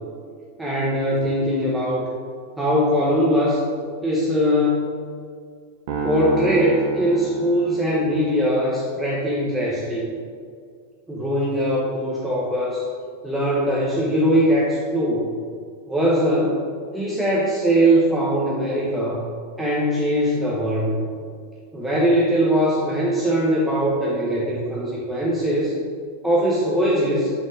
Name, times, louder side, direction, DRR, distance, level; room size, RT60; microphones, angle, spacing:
voice 1, 0.6-2.1 2.6-3.6 4.0-4.8 6.0-10.1 11.1-12.8 13.2-15.2 15.9-16.6 16.9-19.3 19.6-21.1 21.7-25.8 26.2-27.3, equal, 5° right, -6 dB, 1.2 m, -21 dB
sound 1, 5.9-8.3, right 5 dB, 50° right, 1.4 m, -29 dB
7.7 x 5.7 x 3.9 m, 2.1 s
figure-of-eight pair, 90°, 0 cm